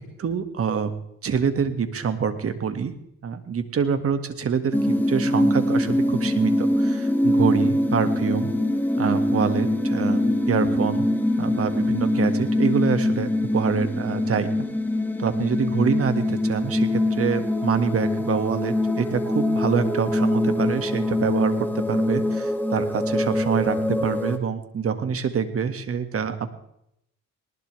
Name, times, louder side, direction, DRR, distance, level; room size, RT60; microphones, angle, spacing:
voice 1, 0.2-0.9 1.2-2.9 3.2-8.5 9.0-11.1 11.4-14.5 15.2-26.5, right 6 dB, 50° right, 8 dB, 1.9 m, -26 dB
sound 1, 4.7-24.4, left 1 dB, 5° left, 1.8 m, -23 dB
19.5 x 19.5 x 3.4 m, 0.76 s
cardioid pair, 90°, 30 cm